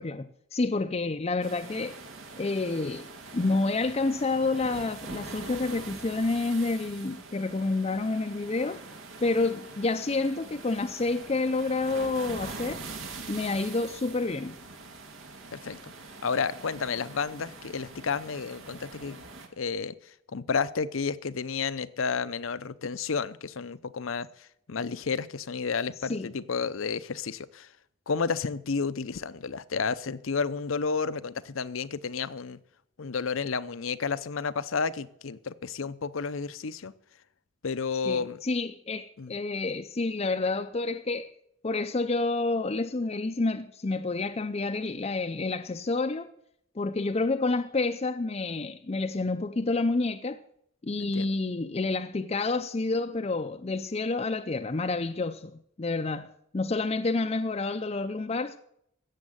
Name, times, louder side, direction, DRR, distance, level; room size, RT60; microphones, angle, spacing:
voice 1, 0.0-2.0 2.4-3.1 3.3-8.8 9.2-12.8 13.3-14.6 26.0-26.3 38.0-41.3 41.6-46.3 46.8-50.4 50.8-58.6, left 3 dB, 30° left, 0.5 m, -29 dB
sound 1, 1.4-19.5, right 3 dB, 80° right, 2.1 m, -43 dB
voice 2, 15.5-15.9 16.2-19.2 19.6-27.7 28.1-32.6 33.0-36.9 37.6-38.4 39.2-39.3 51.0-51.3, left 5 dB, 75° left, 0.7 m, -31 dB
16.0 x 7.3 x 7.9 m
head